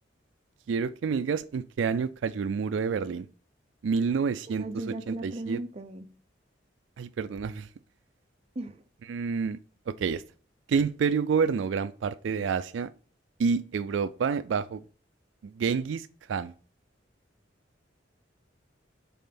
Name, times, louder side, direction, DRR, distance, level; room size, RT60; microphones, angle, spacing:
voice 1, 0.7-3.3 3.8-4.6 5.1-5.6 7.0-7.7 9.1-9.6 9.9-10.2 10.7-12.9 13.4-14.8 15.4-16.5, right 5 dB, 85° right, 0.4 m, -28 dB
voice 2, 4.5-6.1 8.5-8.8, right 2 dB, 35° right, 0.7 m, -37 dB
5.4 x 4.2 x 5.8 m
head